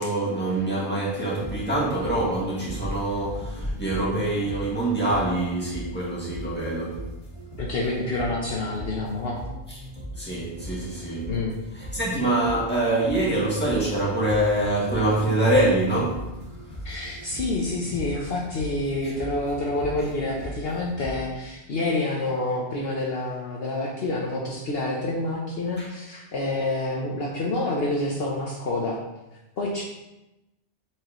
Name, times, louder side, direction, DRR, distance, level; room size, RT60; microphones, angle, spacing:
voice 1, 0.0-7.0 10.2-11.3 11.9-16.2 25.8-25.9, right 1 dB, 10° left, -7 dB, 2.0 m, -25 dB
sound 1, 1.2-21.1, equal, 40° left, 2.2 m, -39 dB
voice 2, 7.6-9.4 11.3-11.6 16.8-29.0 29.6-29.8, left 2 dB, 60° left, -2 dB, 1.0 m, -28 dB
7.8 x 4.9 x 3.0 m, 0.99 s
omnidirectional pair, 1.2 m